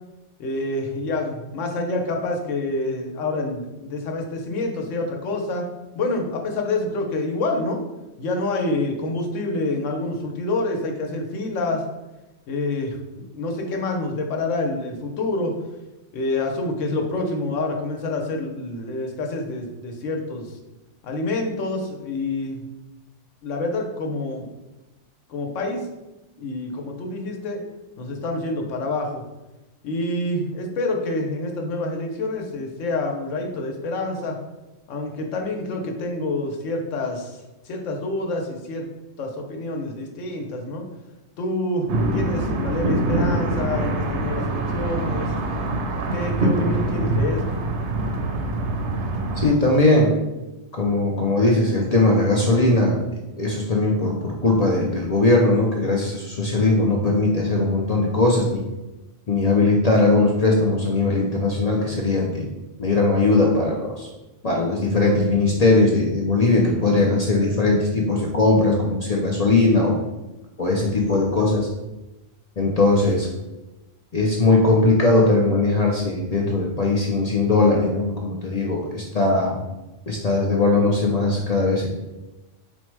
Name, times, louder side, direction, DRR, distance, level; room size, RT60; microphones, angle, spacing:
voice 1, 0.4-5.7 5.9-7.8 8.2-11.9 12.5-13.0 13.3-15.6 16.1-20.5 21.0-22.7 23.4-24.5 25.3-25.9 26.4-27.6 28.0-29.2 29.8-34.4 34.9-38.9 39.2-40.8 41.4-45.3 46.1-47.6, left 2 dB, 75° left, 2 dB, 1.0 m, -27 dB
sound 1, 41.9-49.5, right 2 dB, 70° right, 0.8 m, -24 dB
voice 2, 49.4-50.1 50.7-53.0 53.4-58.6 59.3-62.5 62.8-64.1 64.4-70.0 70.6-71.7 72.6-73.3 74.1-79.6 80.1-81.9, left 2 dB, 60° left, -1 dB, 0.4 m, -19 dB
4.3 x 2.1 x 4.5 m, 1.0 s
omnidirectional pair, 1.3 m